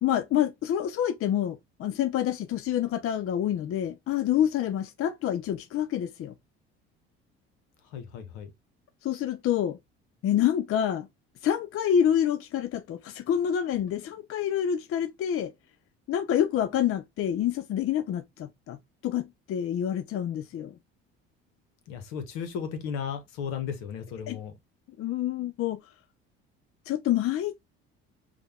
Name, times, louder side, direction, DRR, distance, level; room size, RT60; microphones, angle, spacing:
voice 1, 0.0-6.3 9.0-9.8 10.2-11.1 11.4-15.5 16.1-18.8 19.0-20.7 24.3-24.4 25.0-25.8 26.9-27.5, left 10 dB, 45° left, 0.6 m, -27 dB
voice 2, 7.8-8.5 21.9-24.6, left 7 dB, 75° left, 1.1 m, -35 dB
5.1 x 2.4 x 3.4 m
hypercardioid pair, 70°, 31 cm